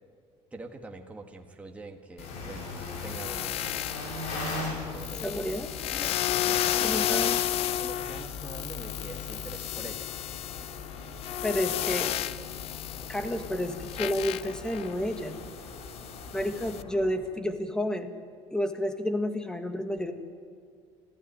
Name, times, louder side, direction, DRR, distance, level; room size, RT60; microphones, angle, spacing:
voice 1, 0.5-2.7 3.0-3.9 4.9-5.3 6.4-7.2 7.8-10.1 11.6-11.9, right 3 dB, 10° right, 2 dB, 1.6 m, -44 dB
sound 1, 2.2-17.1, left 2 dB, 80° left, 6.9 m, -41 dB
sound 2, 2.2-16.8, left 12 dB, 55° left, 0.8 m, -33 dB
voice 2, 5.2-6.1 6.8-7.4 11.4-12.1 13.1-15.4 16.3-18.2 18.5-20.1, left 1 dB, 5° left, 7 dB, 1.7 m, -30 dB
26.0 x 15.5 x 9.5 m, 2.3 s
cardioid pair, 150°, 12 cm